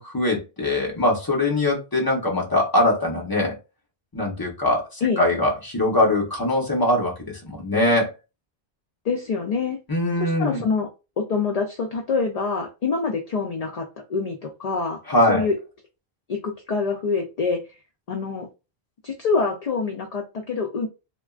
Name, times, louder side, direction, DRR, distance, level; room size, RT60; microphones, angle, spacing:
voice 1, 0.0-3.5 4.1-8.1 9.9-10.6 15.1-15.5, left 1 dB, 20° left, 0.9 m, -22 dB
voice 2, 9.0-9.8 10.2-10.9 11.2-15.0 15.3-15.6 16.3-17.6 18.1-18.5 19.0-20.9, left 4 dB, 50° left, 0.5 m, -25 dB
3.3 x 2.2 x 2.4 m
omnidirectional pair, 1.1 m